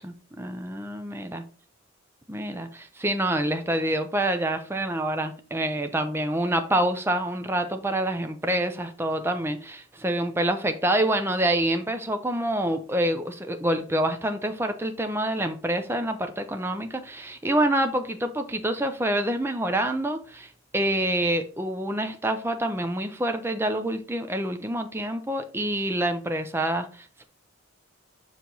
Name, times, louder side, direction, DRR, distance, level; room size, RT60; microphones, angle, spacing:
voice 1, 0.0-1.4 2.3-27.2, right 1 dB, 10° right, 0.5 m, -27 dB
6.8 x 4.7 x 3.9 m
head